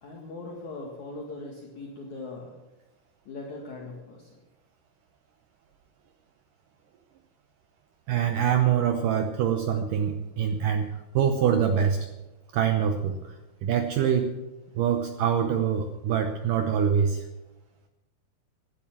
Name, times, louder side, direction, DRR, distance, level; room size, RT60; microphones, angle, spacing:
voice 1, 0.0-2.5 3.3-4.3, left 2 dB, 50° left, -1 dB, 2.8 m, -40 dB
voice 2, 8.1-12.1 12.5-14.3 14.7-17.2, right 8 dB, 80° right, 6 dB, 1.9 m, -25 dB
16.0 x 11.0 x 7.3 m, 1.0 s
omnidirectional pair, 4.9 m